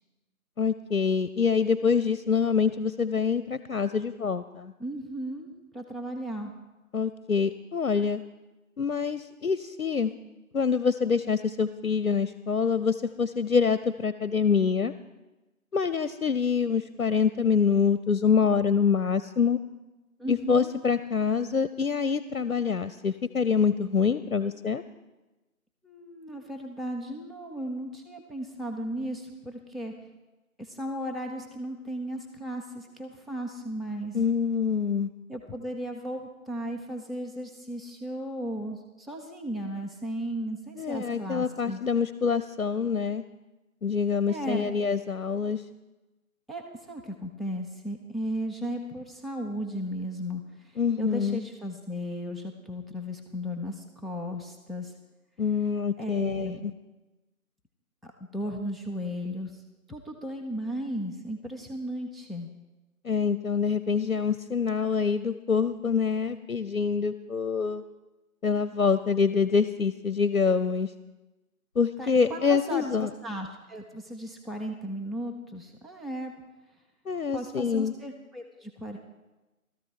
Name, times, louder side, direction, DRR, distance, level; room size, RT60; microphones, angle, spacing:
voice 1, 0.6-4.7 6.9-8.2 8.8-10.1 10.5-14.9 15.7-19.6 20.3-24.8 34.1-35.1 40.8-43.2 43.8-45.6 50.8-51.4 55.4-56.5 63.0-67.8 68.4-70.9 71.8-73.1 77.1-77.9, left 6 dB, 70° left, 14 dB, 0.6 m, -25 dB
voice 2, 4.8-5.5 5.7-6.5 20.2-20.7 25.8-29.9 30.6-34.2 35.3-41.8 44.3-44.8 46.5-54.9 56.0-56.7 58.0-59.6 59.9-62.5 72.0-76.3 77.3-79.0, equal, ahead, 1 dB, 0.6 m, -35 dB
15.5 x 13.5 x 4.5 m, 1.1 s
figure-of-eight pair, 165°, 43 cm